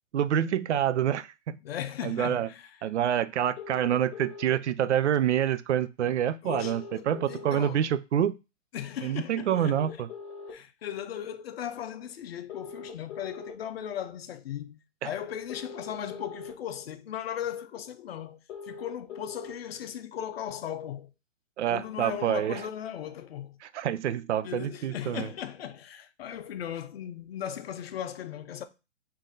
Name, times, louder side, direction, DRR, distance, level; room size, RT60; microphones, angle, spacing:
voice 1, 0.1-1.6 2.0-2.5 2.8-8.3 9.0-10.1 15.0-15.1 21.6-22.6 23.7-25.3, right 10 dB, 65° right, 0.5 m, -27 dB
voice 2, 1.6-2.8 6.4-7.9 8.7-9.8 10.5-18.4 18.6-21.1 21.7-23.6 24.4-28.6, left 10 dB, 55° left, 0.6 m, -37 dB
sound 1, 3.6-4.5 6.5-7.5 9.5-10.5 12.5-13.5 15.5-16.5 18.5-19.5, left 5 dB, 10° left, 0.4 m, -42 dB
3.8 x 2.8 x 3.8 m
hypercardioid pair, 135°, 37 cm